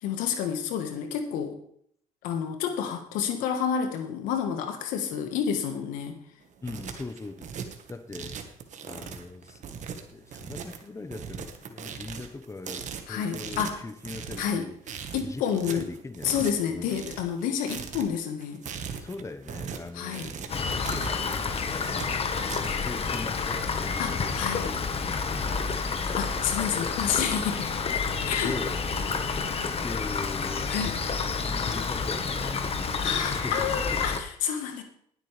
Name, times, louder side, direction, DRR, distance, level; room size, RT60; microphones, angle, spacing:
voice 1, 0.0-1.6 2.2-6.2 13.1-13.8 14.4-14.7 15.1-15.9 16.2-18.6 19.9-20.3 24.0-24.6 26.1-27.7 28.2-28.6 30.7-31.0 33.0-34.8, left 8 dB, 85° left, 6 dB, 1.6 m, -29 dB
sound 1, 6.4-23.2, right 7 dB, 60° right, 1.7 m, -40 dB
voice 2, 6.6-8.4 8.8-14.7 15.2-16.4 16.7-17.0 19.0-21.9 22.4-25.7 28.4-30.7 31.4-33.6, left 3 dB, 20° left, 9 dB, 1.2 m, -41 dB
Rain, 20.5-34.2, left 5 dB, 45° left, 1.5 m, -29 dB
19.0 x 8.2 x 3.5 m, 0.63 s
supercardioid pair, 70°, 14 cm